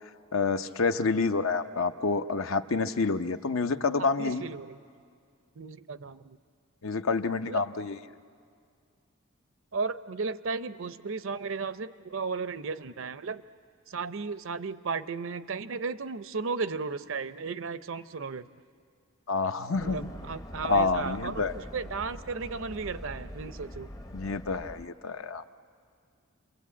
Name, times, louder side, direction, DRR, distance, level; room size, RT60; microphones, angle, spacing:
voice 1, 0.3-4.5 6.8-8.0 19.3-20.1 20.7-21.5 24.1-25.4, left 4 dB, 65° left, 9 dB, 0.7 m, -28 dB
voice 2, 4.2-4.8 5.6-6.4 7.5-7.6 9.7-13.4 13.9-18.5 19.8-23.9, right 4 dB, 60° right, 13 dB, 0.6 m, -35 dB
sound 1, 19.7-24.9, equal, 15° left, 0.7 m, -43 dB
28.5 x 22.5 x 8.4 m, 2.2 s
head